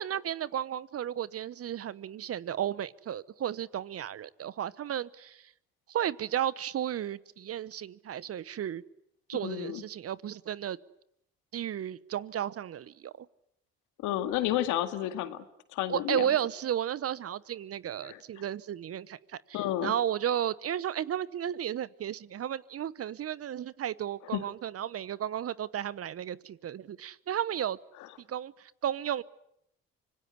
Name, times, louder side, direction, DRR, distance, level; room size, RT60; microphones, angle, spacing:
voice 1, 0.0-5.5 5.9-8.8 9.3-10.8 11.5-13.3 15.9-27.8 28.3-29.2, right 10 dB, 50° right, 20 dB, 1.0 m, -33 dB
voice 2, 9.4-9.8 14.0-15.4 15.7-16.3 18.0-18.2 19.5-19.9 24.3-24.4, left 13 dB, 80° left, 10 dB, 2.0 m, -31 dB
25.5 x 19.0 x 9.7 m, 0.77 s
supercardioid pair, 65°, 30 cm